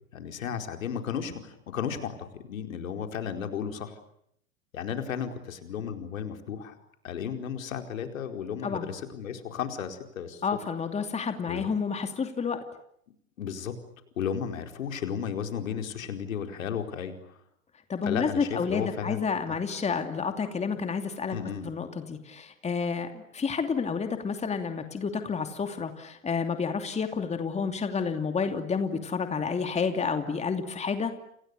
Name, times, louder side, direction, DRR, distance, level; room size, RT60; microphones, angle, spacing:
voice 1, 0.1-2.2 2.5-3.9 4.7-6.7 7.0-10.4 11.5-11.7 13.4-13.8 14.2-17.2 18.0-19.6 21.3-21.7, left 8 dB, 70° left, 5 dB, 4.7 m, -34 dB
voice 2, 10.4-12.6 17.9-21.4 21.6-31.1, left 5 dB, 15° left, 7 dB, 2.8 m, -30 dB
30.0 x 29.0 x 6.9 m, 0.72 s
hypercardioid pair, 100°, 41 cm